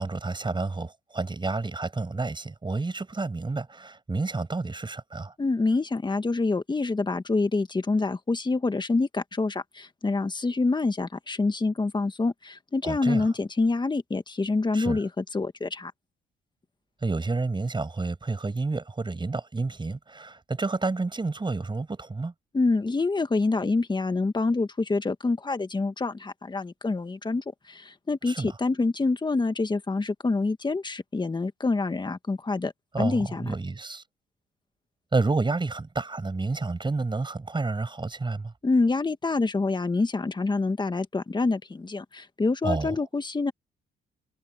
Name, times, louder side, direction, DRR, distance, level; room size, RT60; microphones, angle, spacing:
voice 1, 0.0-5.3 12.8-13.3 14.7-15.0 17.0-22.3 28.3-28.6 32.9-34.0 35.1-38.5 42.6-43.0, right 3 dB, 25° right, 7.7 m, -30 dB
voice 2, 5.4-15.9 22.5-32.7 33.0-33.4 38.6-43.5, left 3 dB, 20° left, 1.7 m, -26 dB
cardioid pair, 90°, 20 cm